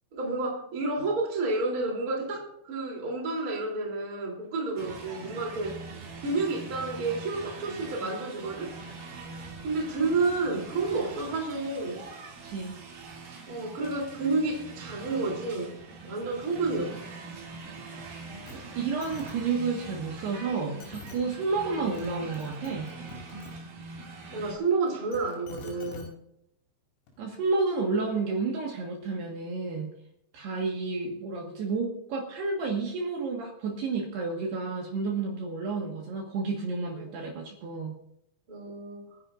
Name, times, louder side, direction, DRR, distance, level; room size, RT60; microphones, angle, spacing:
voice 1, 0.1-5.8 6.2-8.7 9.6-12.0 13.5-15.8 16.0-17.0 24.3-26.1 37.0-37.1 38.5-39.0, right 3 dB, 20° right, -1 dB, 2.8 m, -30 dB
sound 1, 4.8-24.6, right 3 dB, 50° right, 3.4 m, -43 dB
voice 2, 12.4-12.8 18.5-22.9 27.2-29.9 30.3-37.9, right 4 dB, 65° right, 0 dB, 3.3 m, -31 dB
sound 2, 18.5-18.6 18.8-19.3 20.4-20.5 20.8-21.2 21.7-22.1 22.3-23.5 24.9-26.1 27.1-27.2, left 2 dB, 80° left, 5.6 m, -45 dB
27.0 x 11.0 x 2.5 m, 0.75 s
omnidirectional pair, 5.7 m